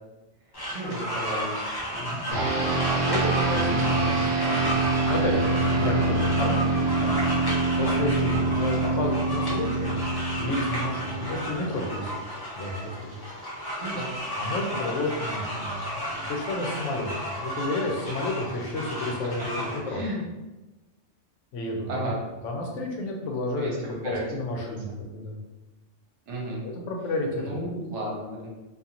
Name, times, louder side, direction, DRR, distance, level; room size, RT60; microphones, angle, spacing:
sound 1, 0.5-19.8, equal, 30° left, 0.5 m, -33 dB
voice 1, 0.7-1.6 1.9-2.3 3.5-4.1 5.8-6.2 13.8-14.1 19.0-19.5 19.9-20.2 21.9-22.2 23.5-24.2 26.3-26.6 27.4-28.5, right 1 dB, 70° right, -3 dB, 1.0 m, -34 dB
sound 2, 2.3-11.9, right 3 dB, 50° right, 0.9 m, -26 dB
voice 2, 3.0-7.3 7.8-10.0 10.4-12.2 12.6-13.2 14.4-20.1 21.5-22.1 22.4-23.7 24.0-25.4 26.6-27.5, left 2 dB, 85° left, 1 dB, 0.9 m, -31 dB
2.5 x 2.4 x 2.8 m, 1.1 s
omnidirectional pair, 1.3 m